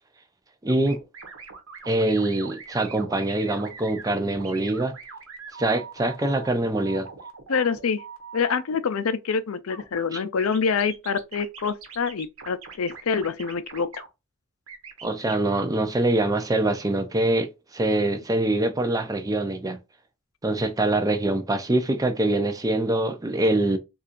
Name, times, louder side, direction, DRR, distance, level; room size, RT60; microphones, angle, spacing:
voice 1, 0.6-1.0 1.9-4.9 5.6-7.1 10.1-10.2 15.0-19.8 20.4-23.8, right 2 dB, 15° right, 0.5 m, -24 dB
sound 1, 0.7-8.6 9.7-10.1 10.4-14.1 14.7-15.4, right 5 dB, 75° right, 1.1 m, -42 dB
voice 2, 7.5-8.0 8.3-14.0, left 5 dB, 75° left, 0.5 m, -26 dB
4.2 x 2.5 x 2.5 m
head